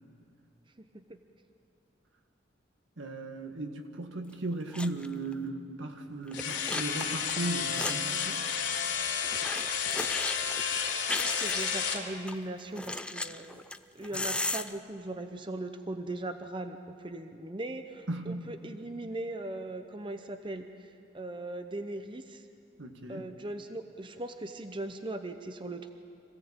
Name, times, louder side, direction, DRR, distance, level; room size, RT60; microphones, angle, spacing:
voice 1, 0.8-1.2 11.2-13.6 13.9-22.5 23.1-25.9, right 2 dB, 25° right, 7 dB, 0.8 m, -39 dB
voice 2, 3.0-8.5 14.1-14.3 18.1-18.5 22.8-23.3, right 2 dB, 80° right, 5 dB, 1.8 m, -37 dB
sound 1, 4.3-4.4 4.7-5.1 5.3-5.4 6.3-8.2 9.2-12.3 12.8-14.7, left 2 dB, 5° left, 0.5 m, -36 dB
sound 2, 6.3-12.0, left 7 dB, 75° left, 3.5 m, -31 dB
25.5 x 16.5 x 8.8 m, 2.5 s
head